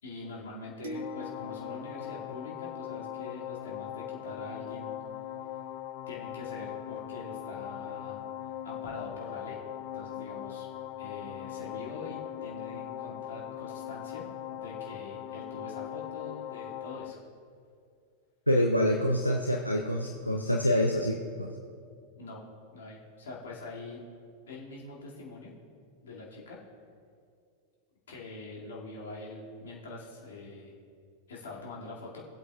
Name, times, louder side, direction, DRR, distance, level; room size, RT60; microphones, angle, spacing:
voice 1, 0.0-4.9 6.1-9.6 9.9-10.7 11.0-14.2 14.5-17.2 22.2-22.4 22.7-24.0 24.5-25.5 26.0-26.6 28.1-30.7 31.3-32.2, left 3 dB, 65° left, -4 dB, 2.2 m, -44 dB
sound 1, 0.8-3.3, right 1 dB, 65° right, 1.4 m, -45 dB
sound 2, 0.9-17.1, left 11 dB, 45° left, 0.5 m, -40 dB
voice 2, 18.5-21.6, equal, 90° left, 0 dB, 0.6 m, -26 dB
18.5 x 8.1 x 2.3 m, 2.3 s
figure-of-eight pair, 90°, 0 cm